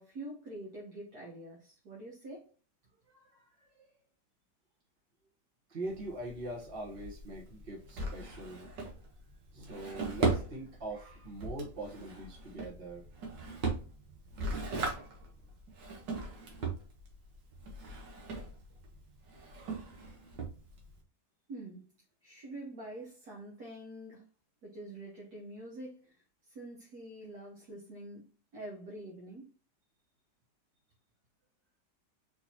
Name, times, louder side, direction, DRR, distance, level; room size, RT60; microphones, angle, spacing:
voice 1, 0.0-2.5 21.5-21.9 22.2-24.3 24.6-29.5, right 1 dB, 65° right, 1.6 m, -46 dB
voice 2, 3.1-3.9 5.7-8.8 9.5-13.0 14.5-15.3, right 1 dB, 35° right, 1.2 m, -43 dB
Drawer open or close, 5.8-21.0, right 3 dB, 85° right, 1.9 m, -38 dB
4.4 x 4.3 x 2.8 m
omnidirectional pair, 1.9 m